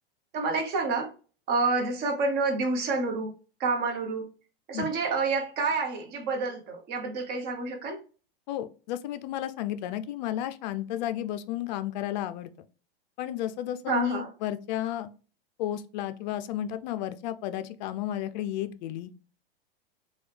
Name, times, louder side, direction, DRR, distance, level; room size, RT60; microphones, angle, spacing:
voice 1, 0.3-1.1 1.5-3.3 3.6-4.3 4.7-8.0 13.9-14.3, right 3 dB, 30° right, 0.9 m, -28 dB
voice 2, 8.5-12.5 13.2-15.1 15.6-19.1, left 12 dB, 50° left, 0.4 m, -33 dB
3.1 x 2.3 x 3.2 m
hypercardioid pair, 120°, 30 cm